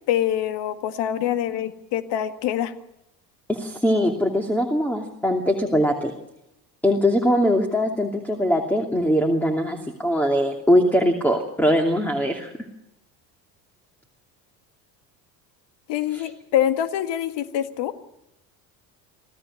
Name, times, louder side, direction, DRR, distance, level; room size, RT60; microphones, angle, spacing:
voice 1, 0.1-2.7 15.9-17.9, left 11 dB, 55° left, 10 dB, 1.9 m, -25 dB
voice 2, 3.5-6.1 6.8-12.5 16.1-16.2, equal, 5° left, 4 dB, 2.7 m, -21 dB
26.5 x 16.0 x 6.5 m, 0.87 s
hypercardioid pair, 65°, 50 cm